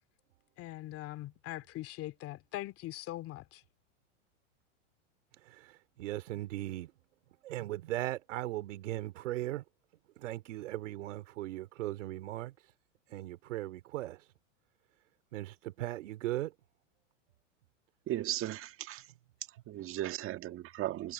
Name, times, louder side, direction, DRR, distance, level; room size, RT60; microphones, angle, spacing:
voice 1, 0.6-3.6, left 15 dB, 35° left, 2.5 m, -42 dB
voice 2, 5.3-6.9 7.4-9.6 10.2-12.7 13.1-14.3 15.3-16.5, right 15 dB, 70° right, 2.9 m, -38 dB
voice 3, 18.1-19.1 19.5-21.1, right 14 dB, 35° right, 1.7 m, -37 dB
hypercardioid pair, 120°, 38 cm